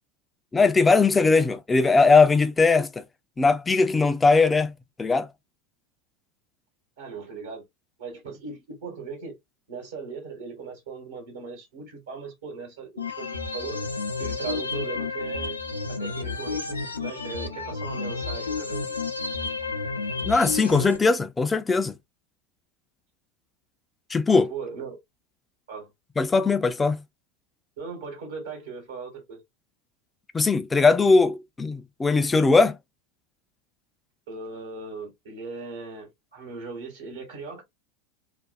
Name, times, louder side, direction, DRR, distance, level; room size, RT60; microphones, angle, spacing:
voice 1, 0.5-3.0 3.4-4.7 5.0-5.3 20.2-21.9 24.1-24.5 26.2-27.0 30.3-32.8, left 4 dB, 15° left, 0.4 m, -20 dB
voice 2, 7.0-7.6 8.0-9.4 9.7-13.8 14.2-15.6 15.9-19.0 24.5-25.0 25.7-25.9 27.8-29.4 34.3-37.6, right 5 dB, 70° right, 1.1 m, -38 dB
sound 1, 13.0-21.0, left 4 dB, 85° left, 0.4 m, -31 dB
2.5 x 2.1 x 2.4 m
figure-of-eight pair, 80°, 0 cm